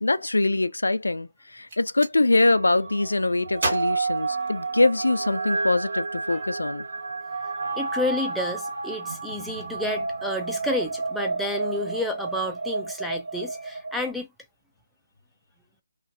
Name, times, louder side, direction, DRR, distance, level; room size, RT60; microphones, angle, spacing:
voice 1, 0.0-6.8, left 2 dB, 85° left, 0.3 m, -23 dB
Gunshot gunfire, 1.7-2.2 3.6-5.0, right 2 dB, 45° right, 1.3 m, -32 dB
sound 1, 2.4-14.1, right 3 dB, 70° right, 0.6 m, -31 dB
voice 2, 7.8-14.3, left 1 dB, ahead, 0.4 m, -30 dB
2.5 x 2.3 x 2.4 m
figure-of-eight pair, 155°, 0 cm